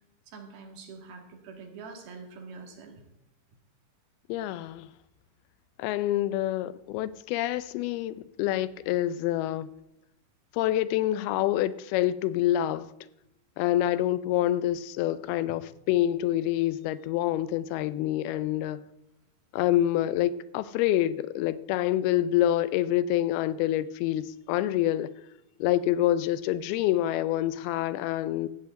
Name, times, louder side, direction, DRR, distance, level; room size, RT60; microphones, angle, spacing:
voice 1, 0.3-3.0 15.5-15.6, right 4 dB, 75° right, 3.9 m, -45 dB
voice 2, 4.3-4.9 5.8-9.7 10.5-12.9 13.6-18.8 19.5-25.1 25.6-28.5, left 13 dB, 85° left, 2.6 m, -27 dB
14.5 x 5.7 x 8.6 m
omnidirectional pair, 4.4 m